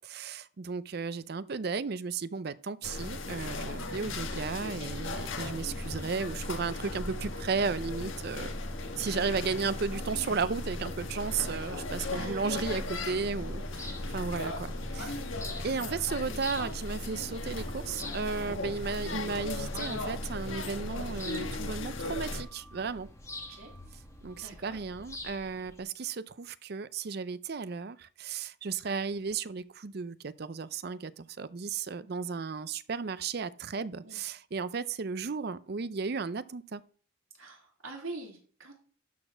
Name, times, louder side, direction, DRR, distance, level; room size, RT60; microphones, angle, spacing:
voice 1, 0.0-8.5 9.0-14.7 14.9-15.2 15.6-23.1 24.2-36.8, right 5 dB, 50° right, 0.5 m, -34 dB
sound 1, 2.8-22.4, left 2 dB, 75° left, 1.4 m, -37 dB
voice 2, 12.1-12.4 14.4-14.5 23.5-23.7 24.4-24.8 34.0-34.2 37.4-38.7, right 3 dB, 85° right, 3.1 m, -45 dB
sound 2, 12.8-25.8, left 2 dB, 15° left, 1.2 m, -47 dB
11.5 x 4.2 x 6.1 m
head